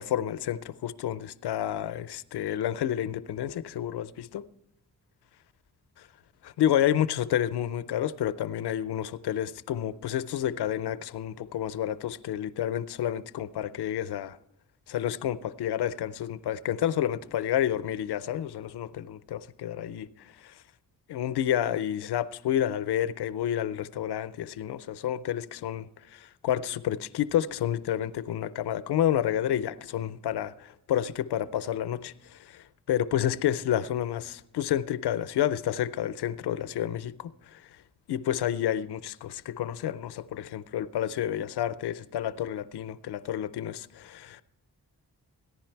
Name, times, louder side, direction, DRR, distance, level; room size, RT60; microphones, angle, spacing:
voice 1, 0.0-4.4 6.4-14.4 14.9-20.1 20.4-20.5 21.1-37.6 38.1-44.4, left 11 dB, 75° left, 0.6 m, -30 dB
15.0 x 10.5 x 4.5 m
cardioid pair, 45°, 40 cm